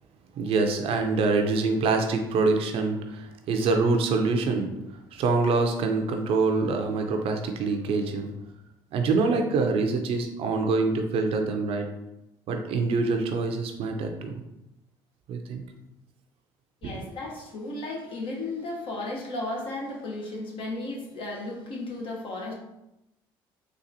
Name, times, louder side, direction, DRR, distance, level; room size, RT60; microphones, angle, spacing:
voice 1, 0.4-4.7 5.1-8.3 8.9-11.9 12.5-14.4 15.3-15.6 16.8-17.0, right 3 dB, 65° right, 4 dB, 0.5 m, -25 dB
voice 2, 16.8-22.5, left 2 dB, 55° left, -1 dB, 1.0 m, -34 dB
4.0 x 2.5 x 2.7 m, 0.90 s
supercardioid pair, 85°, 10 cm